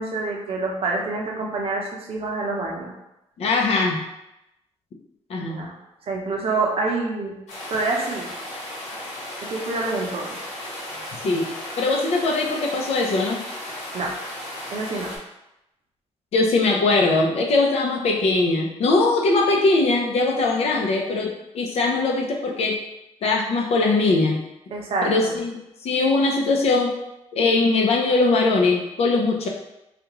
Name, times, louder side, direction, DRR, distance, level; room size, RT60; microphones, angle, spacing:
voice 1, 0.0-2.9 5.5-5.7 6.0-7.4 7.7-8.3 9.5-10.4 10.9-11.0 13.9-14.1 14.7-15.1 24.7-25.4, right 3 dB, 55° right, -1 dB, 0.7 m, -27 dB
voice 2, 3.4-4.0 5.3-5.6 11.2-11.5 11.8-13.4 16.3-22.8 23.2-24.4 25.0-26.9 27.3-29.5, left 3 dB, 60° left, -1 dB, 0.7 m, -21 dB
sound 1, 7.5-15.2, left 1 dB, 85° left, 1.2 m, -35 dB
3.5 x 2.5 x 3.0 m, 0.89 s
cardioid pair, 140°, 12 cm